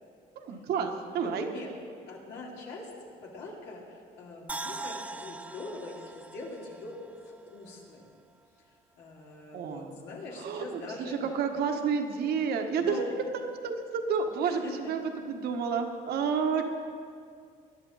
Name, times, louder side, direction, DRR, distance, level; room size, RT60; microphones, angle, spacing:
voice 1, 0.3-1.5 9.5-9.9 10.4-13.1 13.3-16.6, right 6 dB, 70° right, 4 dB, 1.5 m, -30 dB
voice 2, 1.2-1.7 2.1-7.0 7.3-8.1 8.9-11.2 12.7-13.1 14.4-14.9, left 2 dB, 85° left, -3 dB, 3.4 m, -43 dB
sound 1, 4.5-7.7 8.0-8.1, right 2 dB, 10° right, 0.4 m, -41 dB
22.0 x 11.0 x 4.1 m, 2.2 s
cardioid pair, 110°, 17 cm